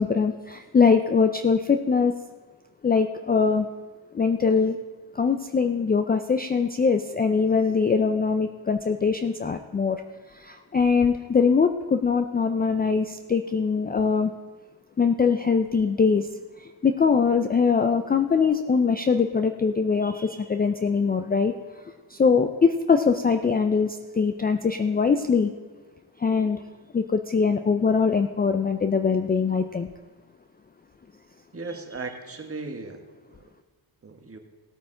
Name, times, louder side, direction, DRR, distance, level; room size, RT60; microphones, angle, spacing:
voice 1, 0.0-2.1 2.8-3.7 4.1-4.8 5.1-10.0 10.3-14.3 15.0-16.3 16.6-21.5 22.1-25.5 26.2-26.6 26.9-29.9, left 5 dB, 20° left, 8 dB, 0.4 m, -22 dB
voice 2, 31.5-33.0 34.0-34.4, right 3 dB, 30° right, 4 dB, 1.4 m, -36 dB
17.5 x 8.5 x 3.8 m, 1.3 s
cardioid pair, 110°, 48 cm